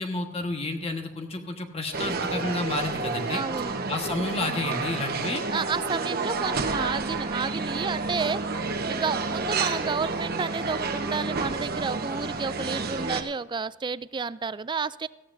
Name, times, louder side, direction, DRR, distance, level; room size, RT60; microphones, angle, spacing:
voice 1, 0.0-3.4 3.9-5.4, left 2 dB, 30° left, 4 dB, 1.4 m, -30 dB
sound 1, 1.9-13.2, right 3 dB, 55° right, 1.1 m, -30 dB
voice 2, 3.3-3.7 5.5-15.1, right 5 dB, 25° right, 17 dB, 0.3 m, -31 dB
17.5 x 15.0 x 2.7 m, 1.1 s
head